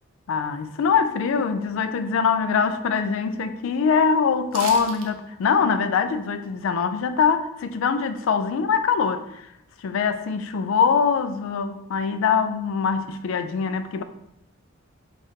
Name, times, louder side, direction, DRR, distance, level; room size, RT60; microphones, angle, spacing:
voice 1, 0.3-9.5 9.8-14.0, left 6 dB, 65° left, 0.3 m, -23 dB
sound 1, 4.5-5.1 5.4-5.5, right 5 dB, 75° right, 0.5 m, -34 dB
5.1 x 2.4 x 2.7 m
head